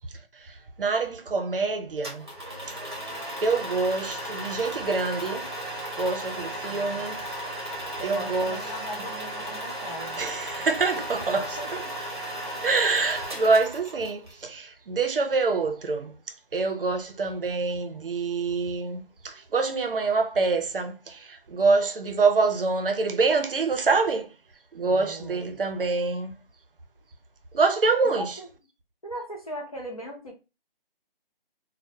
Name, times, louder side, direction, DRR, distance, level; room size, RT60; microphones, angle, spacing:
voice 1, 0.5-2.3 3.4-5.5 6.0-7.2 8.0-8.6 10.2-11.4 11.7-11.8 12.6-16.1 16.5-24.3 24.7-26.4 27.5-28.3, right 4 dB, 65° right, 0.5 m, -26 dB
sound 1, 2.0-14.3, right 1 dB, 25° right, 0.7 m, -35 dB
voice 2, 6.7-7.1 8.0-10.3 10.6-10.7 10.9-11.9 24.8-25.9 28.0-28.5 29.0-30.3, equal, 40° left, 0.5 m, -39 dB
2.2 x 2.1 x 2.7 m
figure-of-eight pair, 175°, 29 cm